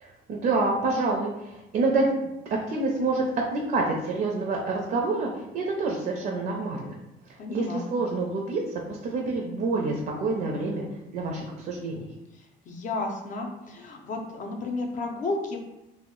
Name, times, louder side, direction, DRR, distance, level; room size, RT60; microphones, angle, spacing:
voice 1, 0.0-2.3 2.7-6.9 7.5-8.6 8.9-10.8 11.1-12.1, right 3 dB, 55° right, 0 dB, 0.5 m, -27 dB
voice 2, 7.4-7.8 12.4-15.6, left 3 dB, 50° left, 2 dB, 0.5 m, -32 dB
2.2 x 2.0 x 3.6 m, 0.94 s
cardioid pair, 110°, 17 cm